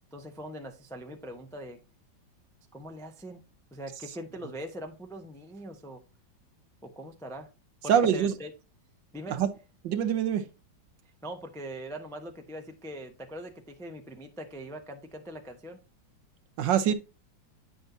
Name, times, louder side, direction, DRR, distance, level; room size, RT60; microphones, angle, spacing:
voice 1, 0.1-1.8 2.7-3.4 3.7-6.0 6.8-7.5 7.8-8.5 9.1-9.4 11.2-15.8 16.9-17.0, equal, 5° left, 0.4 m, -42 dB
voice 2, 7.9-8.3 9.3-9.5 9.8-10.4 16.6-16.9, right 9 dB, 70° right, 1.4 m, -24 dB
9.3 x 6.4 x 2.7 m
omnidirectional pair, 2.2 m